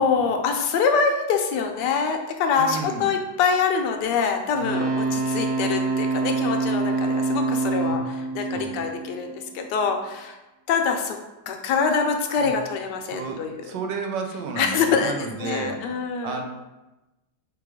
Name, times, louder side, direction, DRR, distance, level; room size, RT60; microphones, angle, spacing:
voice 1, 0.0-10.4 10.7-11.2 11.5-13.6 14.6-16.4, left 5 dB, 75° left, 4 dB, 1.1 m, -25 dB
voice 2, 2.6-3.1 8.3-8.9 13.1-16.4, right 4 dB, 75° right, 4 dB, 1.2 m, -32 dB
sound 1, 4.5-9.6 12.4-12.5, right 3 dB, 55° right, 0.7 m, -26 dB
3.8 x 2.9 x 4.8 m, 1.0 s
omnidirectional pair, 2.0 m